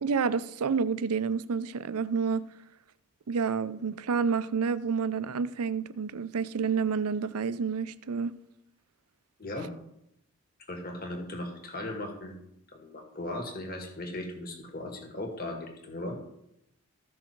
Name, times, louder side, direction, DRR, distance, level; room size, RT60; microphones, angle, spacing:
voice 1, 0.0-2.4 3.3-8.3, right 5 dB, 85° right, 0.5 m, -29 dB
voice 2, 10.7-12.4 12.7-16.2, left 1 dB, 40° left, 2.1 m, -37 dB
14.0 x 6.3 x 4.5 m
head